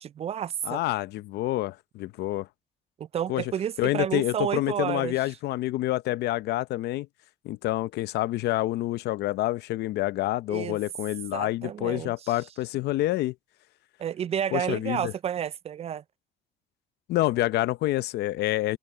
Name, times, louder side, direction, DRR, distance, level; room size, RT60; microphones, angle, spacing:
voice 1, 0.0-0.8 3.0-5.2 10.5-10.8 11.3-12.4 14.0-16.0, right 9 dB, 40° right, 0.3 m, -30 dB
voice 2, 0.6-2.5 3.3-3.4 3.8-7.1 7.4-13.3 14.5-15.1 17.1-18.8, left 16 dB, 75° left, 0.7 m, -27 dB
cardioid pair, 110°, 17 cm